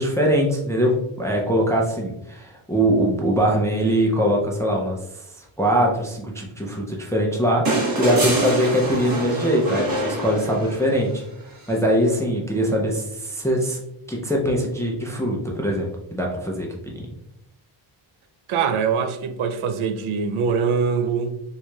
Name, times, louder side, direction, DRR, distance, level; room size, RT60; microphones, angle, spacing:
voice 1, 0.0-5.0 5.6-11.2 11.7-13.8 14.1-17.1, equal, 5° left, 0.3 m, -22 dB
sound 1, 7.7-11.0 12.5-12.6, right 2 dB, 45° right, 1.2 m, -25 dB
voice 2, 18.5-21.4, right 6 dB, 75° right, 0.5 m, -23 dB
4.5 x 2.8 x 2.2 m
wide cardioid pair, 165°, 49 cm